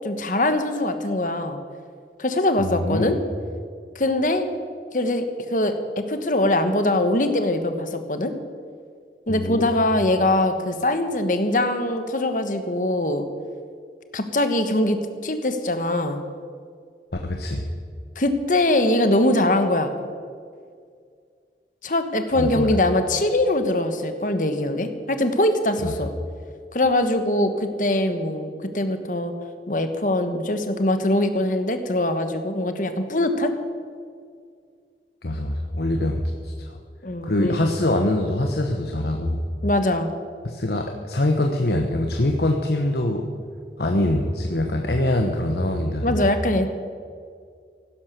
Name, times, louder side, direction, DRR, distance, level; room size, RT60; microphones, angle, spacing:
voice 1, 0.0-1.6 2.2-3.2 3.9-4.5 4.9-5.2 5.5-8.3 9.3-13.2 14.1-16.2 18.1-19.9 21.8-26.1 26.7-29.3 29.7-33.5 37.0-37.6 39.6-40.1 46.0-46.7, left 1 dB, 50° left, 8 dB, 1.3 m, -22 dB
voice 2, 2.6-3.2 9.3-9.7 17.2-17.7 22.4-22.7 25.8-25.9 35.2-36.8 37.2-39.4 40.4-43.3 43.8-46.2, left 1 dB, 65° left, 3 dB, 1.1 m, -24 dB
16.0 x 12.0 x 6.8 m, 2.2 s
head